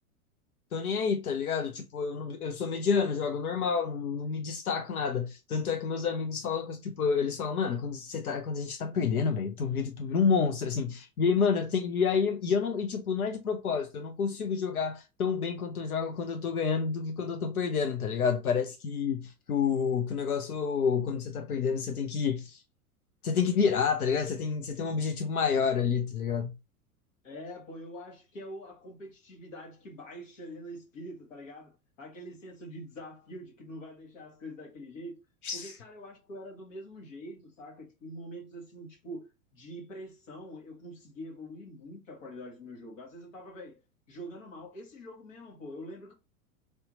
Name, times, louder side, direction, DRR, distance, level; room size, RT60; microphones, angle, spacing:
voice 1, 0.7-22.6 23.2-26.5 35.4-35.8, left 6 dB, 80° left, 0.6 m, -29 dB
voice 2, 27.2-35.2 35.5-43.8 44.1-46.1, equal, 60° left, 1.4 m, -45 dB
3.4 x 2.8 x 3.9 m
figure-of-eight pair, 90°, 43 cm